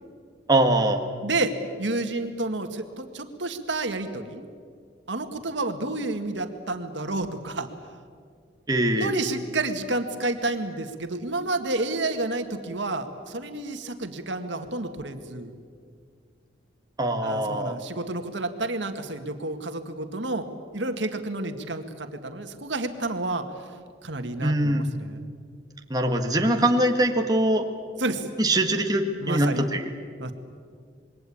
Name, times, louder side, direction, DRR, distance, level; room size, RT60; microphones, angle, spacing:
voice 1, 0.5-1.0 8.7-9.2 17.0-17.7 24.4-24.9 25.9-27.7 28.4-29.9, right 1 dB, 20° right, 3 dB, 1.6 m, -22 dB
voice 2, 1.2-1.5 1.8-4.5 5.1-7.7 8.9-15.5 17.2-20.5 20.7-23.4 24.0-25.2 26.4-26.5 28.0-28.3 29.2-29.7 30.2-30.3, right 2 dB, 80° right, 7 dB, 1.9 m, -30 dB
27.0 x 22.0 x 8.7 m, 2.1 s
head